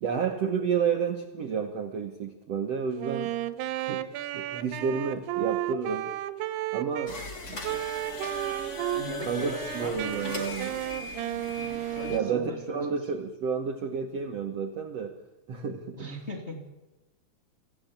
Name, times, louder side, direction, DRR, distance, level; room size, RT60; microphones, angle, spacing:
voice 1, 0.0-3.3 3.8-4.1 4.3-6.1 6.7-7.2 7.5-7.6 9.3-10.8 12.1-15.2 15.5-16.1, right 6 dB, 65° right, 5 dB, 1.6 m, -30 dB
Wind instrument woodwind instrument, 3.0-7.1 7.6-9.0 9.4-12.7, right 14 dB, 85° right, 2.9 m, -33 dB
sound 1, 7.1-12.2, left 2 dB, 60° left, 0.7 m, -39 dB
voice 2, 8.9-10.8 11.9-12.9 15.9-16.6, left 1 dB, 25° left, 0 dB, 1.5 m, -39 dB
25.0 x 15.0 x 8.3 m, 1.1 s
omnidirectional pair, 4.8 m